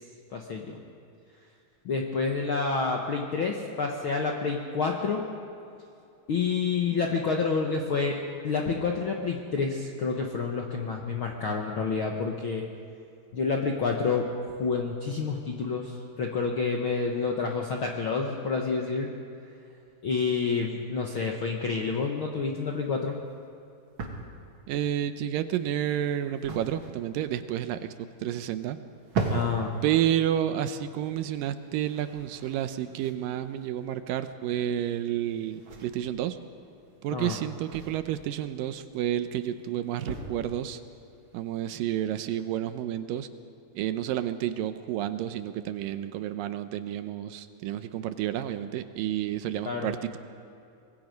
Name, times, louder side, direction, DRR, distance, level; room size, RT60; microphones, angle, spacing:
voice 1, 0.3-0.8 1.8-5.2 6.3-8.2 8.4-12.7 13.3-19.1 20.0-23.2 29.3-29.7 37.1-37.4 49.6-49.9, left 4 dB, 65° left, 1 dB, 1.3 m, -28 dB
sound 1, 22.1-41.9, right 3 dB, 45° right, 2.1 m, -40 dB
voice 2, 24.7-27.9 28.2-28.8 29.8-36.4 37.0-40.8 41.3-43.3 43.7-50.2, right 11 dB, 80° right, 10 dB, 2.4 m, -30 dB
24.5 x 20.5 x 5.3 m, 2.6 s
omnidirectional pair, 4.1 m